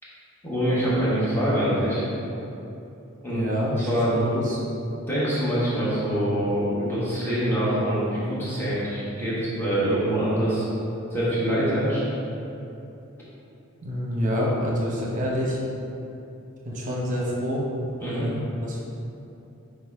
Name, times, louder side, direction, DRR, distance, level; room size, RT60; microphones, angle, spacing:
voice 1, 0.4-2.0 3.2-3.5 3.8-4.1 5.1-10.7 11.1-12.0 18.0-18.2, equal, 10° left, -10 dB, 1.3 m, -24 dB
voice 2, 3.3-4.6 13.8-15.6 16.6-17.6 18.0-18.8, equal, 40° right, -4 dB, 0.9 m, -27 dB
5.0 x 3.9 x 4.7 m, 2.9 s
head